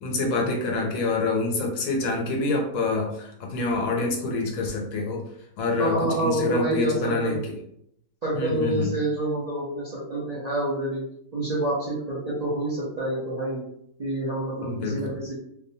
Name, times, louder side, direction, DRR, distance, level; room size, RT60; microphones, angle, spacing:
voice 1, 0.0-5.2 5.6-7.4 8.4-8.9 14.6-15.1, left 3 dB, 80° left, 1 dB, 1.1 m, -26 dB
voice 2, 5.8-7.3 8.2-11.0 11.3-13.6 14.0-15.4, right 1 dB, 45° right, -8 dB, 0.5 m, -27 dB
2.6 x 2.2 x 2.6 m, 0.74 s
omnidirectional pair, 1.4 m